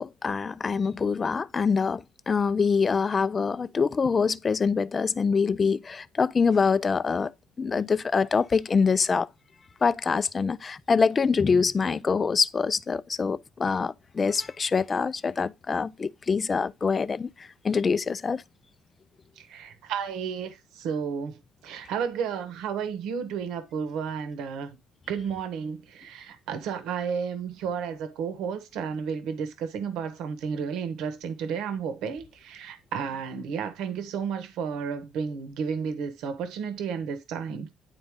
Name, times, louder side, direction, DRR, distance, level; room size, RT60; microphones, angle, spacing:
voice 1, 0.0-7.3 7.6-9.3 9.8-18.4, left 5 dB, 25° left, 0.4 m, -25 dB
voice 2, 19.4-21.4 21.6-24.7 25.1-37.7, right 6 dB, 75° right, 1.2 m, -32 dB
9.9 x 4.0 x 3.6 m
cardioid pair, 145°, 0 cm